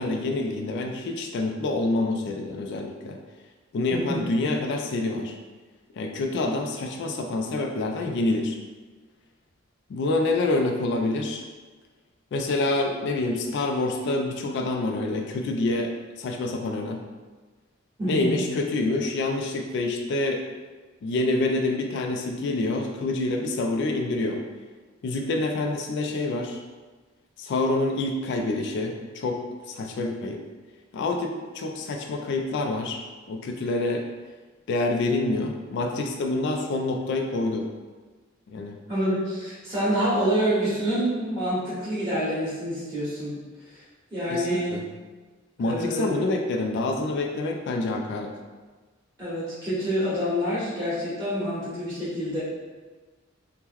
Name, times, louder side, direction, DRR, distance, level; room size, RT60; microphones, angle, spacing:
voice 1, 0.0-3.2 3.7-5.3 6.0-8.6 9.9-11.4 12.3-15.9 16.2-17.0 18.1-20.4 21.0-24.4 25.0-26.6 27.4-30.4 30.9-33.0 33.3-34.1 34.7-37.7 38.5-38.8 44.3-44.8 45.6-48.3, left 2 dB, 60° left, 3 dB, 0.3 m, -27 dB
voice 2, 3.9-4.3 18.0-18.4 38.9-43.3 43.6-43.8 44.1-44.8 45.6-46.3 49.2-52.4, equal, 15° right, -12 dB, 1.1 m, -27 dB
2.9 x 2.1 x 3.6 m, 1.3 s
head